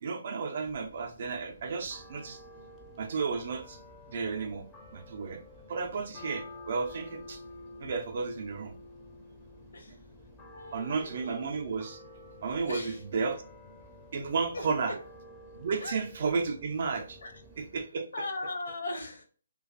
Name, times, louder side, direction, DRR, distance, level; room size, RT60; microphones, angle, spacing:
voice 1, 0.0-2.4 3.0-3.8 4.1-4.7 4.9-5.4 5.7-7.4 7.8-8.7 10.7-12.0 12.4-13.4 14.1-15.0 15.6-17.2 17.6-18.1, right 5 dB, 50° right, 0.4 m, -33 dB
sound 1, 0.6-17.8, left 1 dB, 10° left, 0.4 m, -50 dB
voice 2, 10.5-11.6 12.7-13.0 14.5-15.0 15.8-15.9 17.2-17.4 18.1-19.2, left 2 dB, 65° left, 0.6 m, -38 dB
2.4 x 2.2 x 2.4 m
figure-of-eight pair, 140°, 0 cm